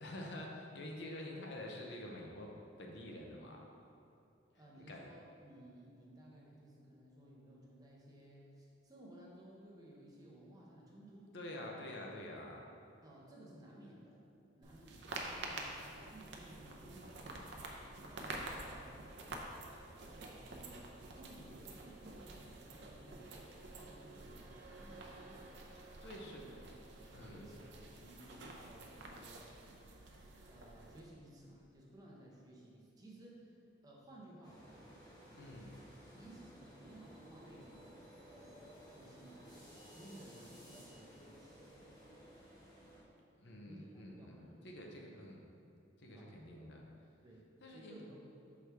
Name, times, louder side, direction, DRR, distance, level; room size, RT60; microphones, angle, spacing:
voice 1, 0.0-2.5 2.8-3.6 4.8-5.1 11.3-12.7 26.0-26.4 27.1-27.4 35.3-35.7 43.4-45.5 46.0-46.9 47.6-48.0, left 1 dB, 60° left, 0 dB, 0.7 m, -48 dB
voice 2, 4.5-11.7 13.0-14.3 14.6-15.8 16.1-19.5 20.2-25.6 26.2-26.5 27.2-29.6 30.5-33.6 33.8-34.9 36.1-37.9 38.9-39.4 39.9-41.6 43.6-45.0 46.1-46.4 47.2-48.2, right 1 dB, 20° right, -4 dB, 0.8 m, -57 dB
sound 1, 14.6-31.0, right 2 dB, 60° right, 0.6 m, -49 dB
sound 2, 34.4-43.0, equal, 20° left, 1.1 m, -57 dB
6.1 x 4.7 x 3.4 m, 2.7 s
head